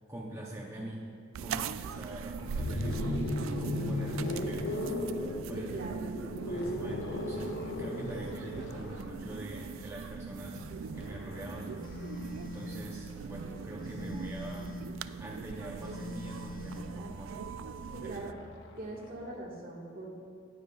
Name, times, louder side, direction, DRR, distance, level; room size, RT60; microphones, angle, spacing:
voice 1, 0.1-1.0 1.4-4.8 5.5-5.7 6.5-10.7 10.9-11.8 12.4-14.8 15.2-17.4 17.9-18.1, right 1 dB, 15° right, -3 dB, 0.7 m, -43 dB
sound 1, 1.3-18.3, right 6 dB, 90° right, 0.3 m, -41 dB
sound 2, 2.3-14.3 15.6-19.2, left 2 dB, 65° left, 0.7 m, -38 dB
voice 2, 5.5-6.0 17.9-18.4 18.8-20.1, right 2 dB, 50° right, -2 dB, 1.6 m, -41 dB
Telephone, 11.8-12.9 13.8-14.9 15.8-16.9, left 1 dB, 45° left, 1.0 m, -43 dB
18.5 x 7.2 x 2.4 m, 2.6 s
head